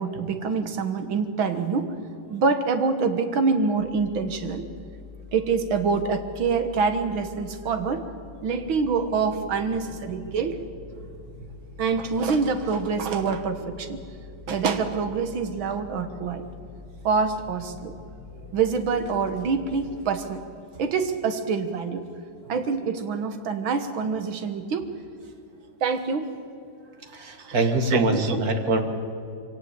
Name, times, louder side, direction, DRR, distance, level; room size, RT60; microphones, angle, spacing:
voice 1, 0.0-1.9 2.3-4.6 5.3-8.0 8.4-10.6 11.8-14.0 14.5-16.4 17.0-17.9 18.5-20.4 20.8-22.1 22.5-24.9 25.8-26.3 27.4-27.6 27.9-28.4, right 5 dB, 75° right, 8 dB, 2.2 m, -26 dB
sound 1, 3.8-19.9, left 4 dB, 25° left, 4.9 m, -45 dB
voice 2, 27.0-28.8, right 2 dB, 45° right, 6 dB, 2.1 m, -24 dB
24.5 x 17.5 x 8.2 m, 2.6 s
omnidirectional pair, 2.2 m